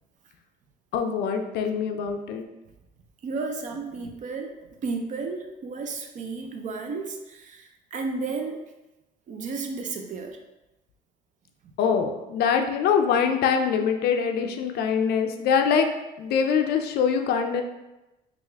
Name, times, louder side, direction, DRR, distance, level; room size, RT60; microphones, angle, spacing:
voice 1, 0.9-2.5 11.8-15.9 16.2-17.6, left 6 dB, 70° left, 5 dB, 0.4 m, -23 dB
voice 2, 3.2-4.5 4.8-8.6 9.3-10.4, right 4 dB, 50° right, 4 dB, 0.5 m, -33 dB
3.4 x 2.4 x 3.3 m, 1.0 s
cardioid pair, 110°, 17 cm